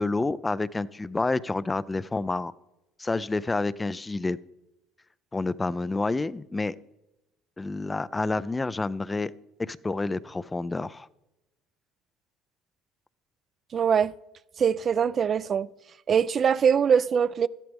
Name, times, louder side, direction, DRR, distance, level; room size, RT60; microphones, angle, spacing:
voice 1, 0.0-2.5 3.0-4.4 5.3-6.8 7.6-9.3 9.6-11.1, left 3 dB, 15° left, 0.4 m, -29 dB
voice 2, 13.7-14.1 14.6-15.7 16.1-17.5, right 7 dB, 40° right, 0.4 m, -22 dB
13.0 x 11.0 x 3.5 m
supercardioid pair, 95°, 0 cm